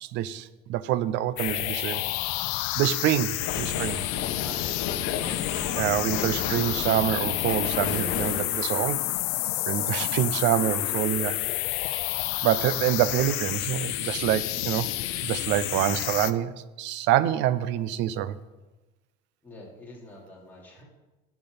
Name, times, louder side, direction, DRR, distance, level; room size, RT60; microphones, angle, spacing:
voice 1, 0.0-2.0 2.8-4.0 5.8-9.0 9.7-11.4 11.9-12.0 12.4-14.9 15.2-18.4, right 12 dB, 60° right, 15 dB, 0.6 m, -26 dB
sound 1, 1.4-16.3, left 17 dB, 80° left, 0.6 m, -30 dB
sound 2, 3.4-8.4, left 8 dB, 65° left, 1.1 m, -32 dB
voice 2, 4.4-5.3 19.4-20.8, left 1 dB, 10° left, -5 dB, 2.8 m, -46 dB
10.5 x 5.9 x 8.7 m, 1.1 s
cardioid pair, 170°, 21 cm